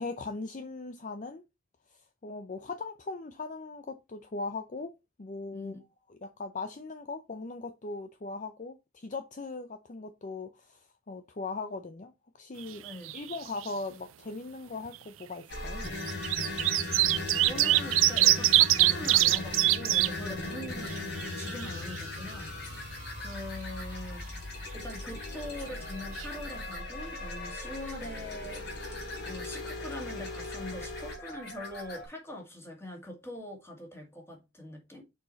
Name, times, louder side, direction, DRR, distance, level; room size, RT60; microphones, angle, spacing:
voice 1, 0.0-1.4 1.9-4.9 5.2-5.7 6.1-12.1 12.4-12.8 13.1-16.0 20.2-20.5, left 3 dB, 40° left, 0.5 m, -39 dB
sound 1, 12.6-13.4 13.6-13.7 14.9-15.0 15.9-20.1 20.6-20.7 20.9-22.0 25.8-25.9 26.2-26.3, right 17 dB, 85° right, 0.4 m, -24 dB
sound 2, 15.5-32.1, left 2 dB, 60° left, 3.4 m, -38 dB
voice 2, 17.3-22.9 23.2-24.4 24.7-35.0, left 1 dB, 15° left, 2.0 m, -43 dB
6.4 x 4.9 x 4.1 m
head